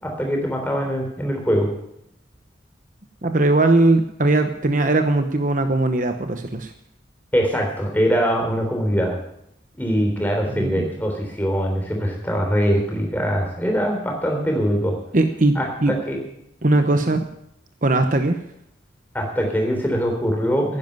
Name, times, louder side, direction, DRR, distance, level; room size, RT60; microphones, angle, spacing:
voice 1, 0.0-1.7 7.3-9.2 9.8-15.0 15.6-16.2 19.1-20.8, equal, 10° left, 1 dB, 3.6 m, -22 dB
voice 2, 3.2-6.7 10.5-10.9 15.1-15.9 16.6-17.3 17.8-18.4, right 2 dB, 40° right, 7 dB, 0.9 m, -19 dB
11.0 x 10.5 x 9.3 m, 0.77 s
head